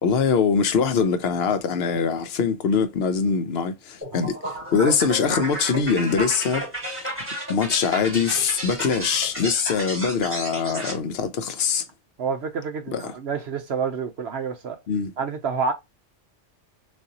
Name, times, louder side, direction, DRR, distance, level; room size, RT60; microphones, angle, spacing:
voice 1, 0.0-7.0 7.5-11.9 12.9-13.1 14.9-15.1, left 6 dB, 60° left, 0.9 m, -23 dB
sound 1, 4.0-11.0, right 1 dB, 10° right, 1.8 m, -32 dB
voice 2, 12.2-14.8 15.2-15.7, right 5 dB, 65° right, 0.9 m, -28 dB
6.3 x 2.6 x 2.8 m
omnidirectional pair, 1.3 m